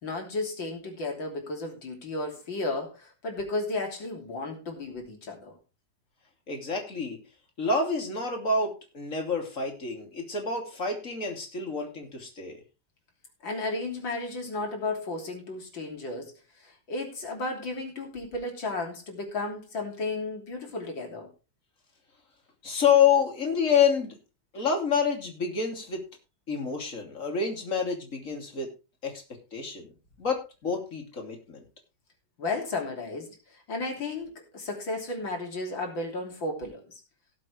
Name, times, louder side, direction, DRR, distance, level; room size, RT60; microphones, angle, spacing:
voice 1, 0.0-5.5 13.4-16.3 16.6-21.3 32.4-36.8, left 2 dB, 75° left, 2 dB, 3.8 m, -34 dB
voice 2, 6.5-7.2 7.6-12.6 22.6-24.2 24.5-26.0 26.5-28.7 29.0-29.2 29.5-29.9 30.2-31.6, left 6 dB, 40° left, 3 dB, 3.1 m, -27 dB
18.0 x 7.5 x 3.3 m, 0.30 s
omnidirectional pair, 2.1 m